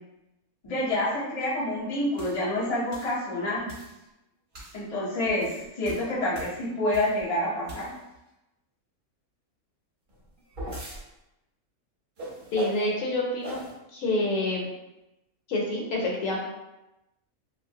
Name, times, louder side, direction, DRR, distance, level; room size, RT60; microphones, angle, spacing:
voice 1, 0.6-3.7 4.7-7.9, left 1 dB, 35° left, -5 dB, 0.6 m, -28 dB
sound 1, 2.2-2.4 2.9-3.2 3.7-4.0 4.5-4.8 5.3-7.2 7.6-8.2 10.1-11.0 12.2-12.9 13.4-13.7, right 1 dB, 45° right, 0.8 m, -39 dB
voice 2, 12.5-13.6 13.9-14.7 15.5-16.4, left 1 dB, 70° left, -2 dB, 0.9 m, -27 dB
2.7 x 2.4 x 2.7 m, 0.95 s
omnidirectional pair, 1.5 m